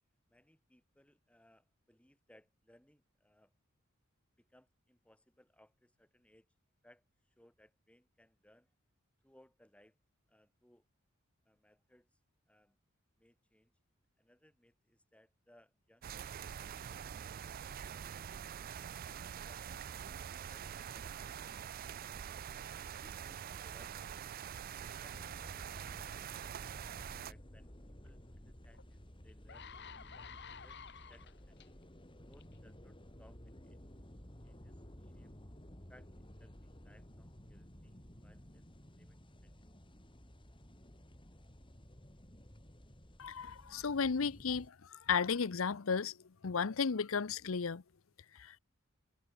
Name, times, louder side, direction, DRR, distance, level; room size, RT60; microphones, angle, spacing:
voice 1, 0.3-3.5 4.4-6.5 6.8-8.7 9.2-10.0 10.3-10.9 11.4-12.2 12.5-12.8 13.2-13.7 14.2-18.7 19.3-22.5 23.0-25.5 25.8-27.7 28.0-29.7 30.1-31.8 32.3-33.8 34.4-35.3 35.9-38.0 38.2-38.6 38.9-39.5, left 1 dB, 5° left, 4.7 m, -67 dB
sound 1, 16.0-27.3, right 8 dB, 45° right, 0.4 m, -45 dB
sound 2, 25.1-44.7, equal, 25° left, 4.0 m, -55 dB
sound 3, 28.7-28.8 29.3-31.7 32.3-32.6, left 7 dB, 55° left, 2.5 m, -51 dB
voice 2, 43.2-46.1 46.4-47.8 48.4-48.6, left 5 dB, 70° left, 0.7 m, -34 dB
head